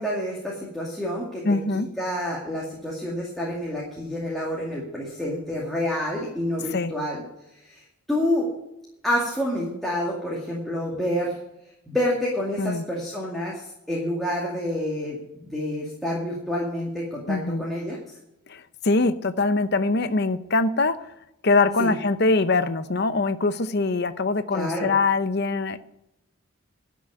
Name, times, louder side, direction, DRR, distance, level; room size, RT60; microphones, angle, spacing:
voice 1, 0.0-1.4 1.7-7.2 7.6-7.8 8.1-8.5 9.0-11.4 11.9-18.0 21.8-21.9 24.5-24.9, left 1 dB, ahead, -5 dB, 2.3 m, -28 dB
voice 2, 1.4-1.9 6.7-6.9 12.6-12.8 17.3-17.6 18.5-21.0 21.4-25.8, left 3 dB, 50° left, 11 dB, 0.7 m, -23 dB
12.0 x 6.2 x 9.4 m, 0.84 s
head